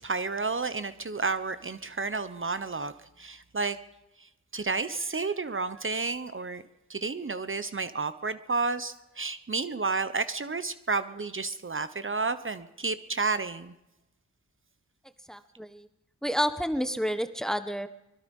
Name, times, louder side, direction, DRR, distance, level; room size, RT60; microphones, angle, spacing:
voice 1, 0.0-3.8 4.2-6.6 6.9-13.7, right 4 dB, 40° right, 12 dB, 1.1 m, -31 dB
voice 2, 15.3-15.9 16.2-17.9, equal, ahead, 10 dB, 1.3 m, -29 dB
24.5 x 21.5 x 5.5 m, 0.93 s
wide cardioid pair, 90°, 30 cm